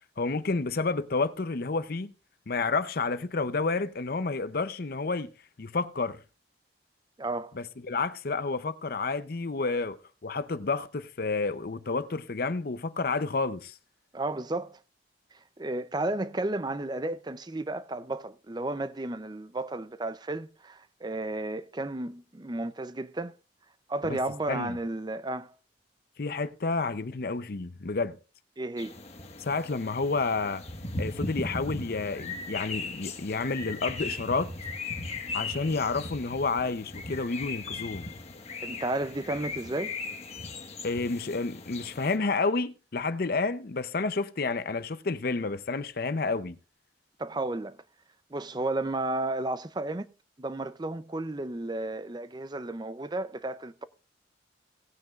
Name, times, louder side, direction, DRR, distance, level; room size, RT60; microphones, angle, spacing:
voice 1, 0.2-2.1 2.5-5.3 5.6-6.2 7.5-13.7 24.0-24.2 24.5-24.8 26.2-28.2 29.4-30.6 31.0-34.5 35.3-38.1 40.8-46.6, left 3 dB, 55° left, 0.6 m, -30 dB
voice 2, 7.2-7.6 14.1-14.8 15.6-23.4 23.9-25.5 28.6-29.0 38.6-39.9 47.2-47.8 48.3-50.1 50.4-53.8, right 2 dB, 25° right, 0.5 m, -33 dB
sound 1, 28.8-42.2, left 3 dB, 35° left, 1.4 m, -38 dB
17.5 x 9.3 x 2.4 m
head